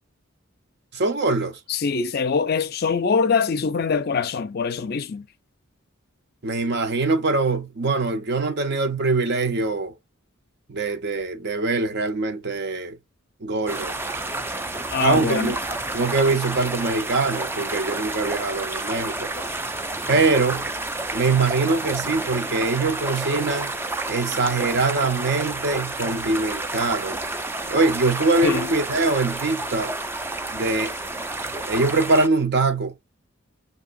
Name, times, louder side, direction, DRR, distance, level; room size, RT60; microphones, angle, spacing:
voice 1, 0.9-1.6 6.4-9.9 10.7-13.0 13.4-14.0 15.0-15.6 15.9-19.3 20.1-20.6 21.1-23.7 24.1-27.2 27.7-29.9 30.5-30.9 31.7-32.9, right 3 dB, 55° right, 0.7 m, -23 dB
voice 2, 1.7-5.3 14.9-15.5 18.2-18.3 28.4-28.7, left 5 dB, 50° left, 0.4 m, -23 dB
sound 1, 13.7-32.3, right 2 dB, 10° right, 0.3 m, -30 dB
sound 2, 23.2-23.7 26.0-26.7, right 4 dB, 80° right, 1.0 m, -40 dB
5.8 x 2.7 x 2.5 m
head